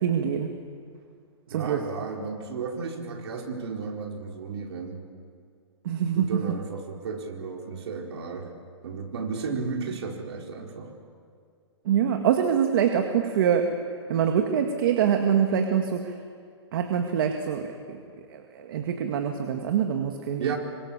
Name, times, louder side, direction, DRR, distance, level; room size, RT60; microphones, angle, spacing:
voice 1, 0.0-0.5 1.5-1.8 5.9-6.4 11.9-13.7 14.1-16.1 16.7-17.7 18.3-20.5, right 8 dB, 50° right, 4 dB, 2.0 m, -24 dB
voice 2, 1.5-5.0 6.1-8.5 8.8-10.9 20.4-20.6, right 5 dB, 65° right, 1 dB, 4.6 m, -34 dB
26.5 x 25.0 x 7.2 m, 2.2 s
hypercardioid pair, 160°, 15 cm